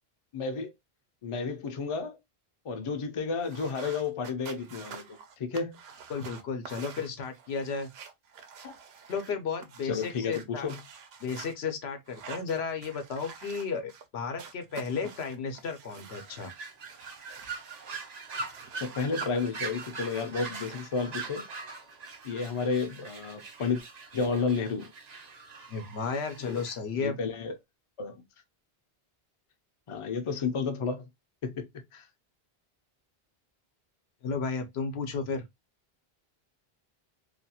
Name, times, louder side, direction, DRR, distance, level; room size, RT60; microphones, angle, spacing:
voice 1, 0.3-0.7 1.2-2.2 2.6-5.8 8.6-8.7 9.8-10.8 18.8-21.4 22.2-23.8 24.1-24.9 26.4-26.7 27.0-27.6 28.0-28.2 29.9-31.1 31.4-31.7 31.9-32.1, left 5 dB, 40° left, 0.5 m, -32 dB
sound 1, 3.4-9.3 9.6-11.5 12.0-14.1 14.4-16.5 16.9-19.3 19.6-20.8, right 6 dB, 80° right, 0.8 m, -48 dB
voice 2, 6.1-7.9 9.1-10.7 11.2-16.5 25.7-27.2 34.2-35.4, left 5 dB, 85° left, 0.9 m, -33 dB
sound 2, 16.1-26.8, right 4 dB, 50° right, 0.6 m, -42 dB
2.5 x 2.3 x 2.7 m
omnidirectional pair, 1.0 m